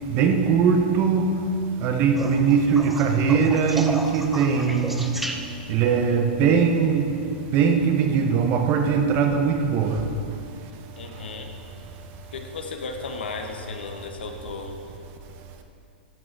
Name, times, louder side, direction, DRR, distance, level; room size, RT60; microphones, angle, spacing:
voice 1, 0.1-1.4 1.8-5.1 5.7-7.1 7.5-10.0, right 6 dB, 40° right, 5 dB, 1.1 m, -20 dB
sound 1, 2.2-5.8 8.0-8.5 10.1-10.2, right 1 dB, 5° right, 0.7 m, -34 dB
voice 2, 11.0-11.5 12.3-14.8, left 4 dB, 80° left, 4 dB, 1.2 m, -35 dB
13.5 x 6.3 x 4.7 m, 2.5 s
hypercardioid pair, 120°, 5 cm